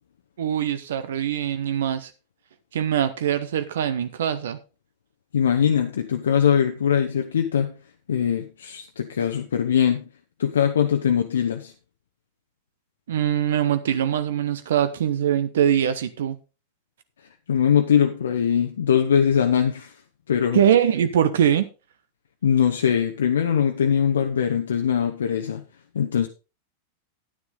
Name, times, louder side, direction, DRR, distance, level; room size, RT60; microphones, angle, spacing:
voice 1, 0.4-2.1 2.7-4.6 13.1-16.4 20.5-21.7, right 9 dB, 60° right, 12 dB, 0.7 m, -22 dB
voice 2, 5.3-7.7 8.1-10.0 10.4-11.7 17.5-19.9 20.3-20.6 22.4-25.6 25.9-26.3, left 8 dB, 65° left, 4 dB, 0.8 m, -21 dB
9.8 x 9.7 x 3.8 m, 0.31 s
figure-of-eight pair, 90°, 0 cm